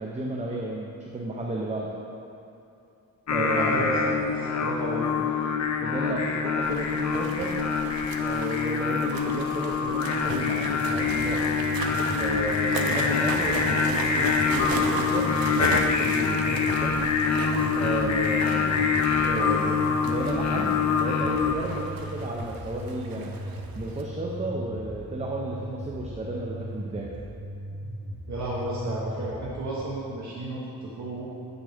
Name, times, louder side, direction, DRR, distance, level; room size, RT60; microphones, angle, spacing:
voice 1, 0.0-2.0 3.3-4.2 5.8-7.6 8.2-11.6 12.2-15.3 15.6-17.0 17.7-23.3 23.7-27.1, right 2 dB, 20° right, -2 dB, 0.4 m, -33 dB
Singing, 3.3-21.6, left 5 dB, 50° left, 0.5 m, -25 dB
voice 2, 3.4-5.3 28.3-31.3, right 1 dB, 55° right, -6 dB, 0.9 m, -33 dB
sound 1, 6.6-24.0, right 4 dB, 75° right, 0.6 m, -37 dB
sound 2, 10.7-29.7, equal, 75° left, 1.2 m, -38 dB
7.9 x 6.3 x 3.4 m, 2.8 s
wide cardioid pair, 175°, 35 cm